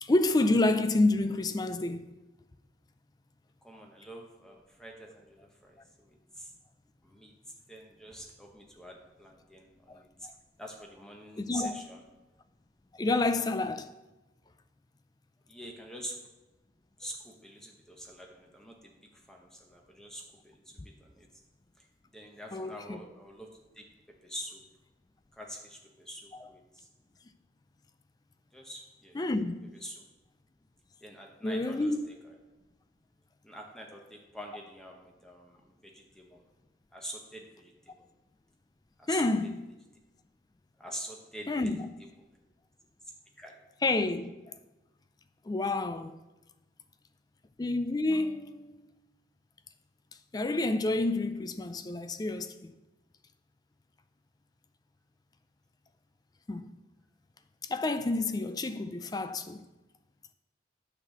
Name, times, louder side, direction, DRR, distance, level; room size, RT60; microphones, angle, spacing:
voice 1, 0.0-2.2 9.9-10.3 11.4-11.8 12.9-13.9 22.5-23.0 26.3-26.5 29.1-29.7 31.4-32.1 39.1-39.7 41.5-41.9 43.8-44.3 45.5-46.2 47.6-48.8 50.3-52.7 56.5-56.7 57.6-59.6, left 2 dB, 20° left, 0.4 m, -29 dB
voice 2, 3.6-6.5 7.0-7.3 7.7-10.1 10.6-12.0 15.5-16.2 17.0-21.3 21.8-21.9 22.1-23.5 23.8-23.9 24.2-24.6 25.3-26.9 28.5-29.2 29.8-30.0 31.0-32.4 33.4-36.4 36.9-38.1 39.0-39.3 40.8-41.7 43.4-43.6, equal, 5° left, 0.8 m, -46 dB
8.8 x 4.0 x 6.6 m
head